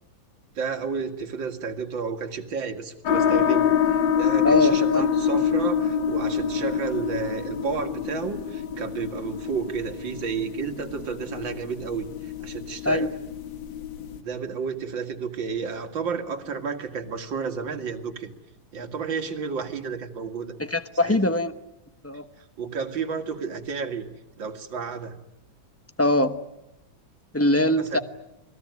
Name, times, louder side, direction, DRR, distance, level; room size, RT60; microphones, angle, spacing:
voice 1, 0.6-13.1 14.2-18.3 18.7-20.5 21.0-21.2 22.6-24.1 24.4-25.2 27.8-28.0, right 5 dB, 70° right, 5 dB, 2.7 m, -31 dB
sound 1, 3.1-14.2, left 8 dB, 70° left, 2.1 m, -26 dB
voice 2, 4.4-5.1 12.8-13.1 20.6-21.5 22.0-22.2 26.0-26.4 27.3-28.0, left 1 dB, 15° left, 10 dB, 0.6 m, -22 dB
28.5 x 20.5 x 9.5 m, 0.91 s
omnidirectional pair, 2.2 m